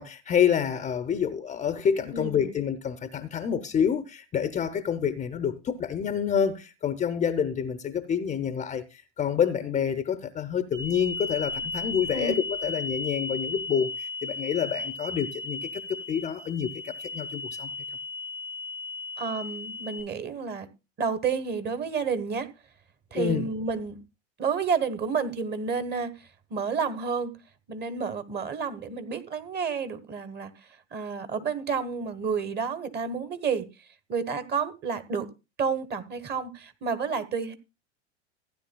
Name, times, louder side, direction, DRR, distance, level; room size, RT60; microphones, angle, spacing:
voice 1, 0.0-17.7 23.1-23.5, left 8 dB, 20° left, 0.6 m, -28 dB
voice 2, 2.1-2.5 12.1-12.3 19.2-20.7 21.0-22.5 23.1-24.0 24.4-27.3 27.7-30.5 30.9-33.6 34.1-35.3 35.6-37.5, right 5 dB, 30° right, 1.2 m, -30 dB
sound 1, 10.7-20.0, left 3 dB, 70° right, 6.9 m, -35 dB
15.5 x 9.8 x 2.2 m
hypercardioid pair, 90°, 35 cm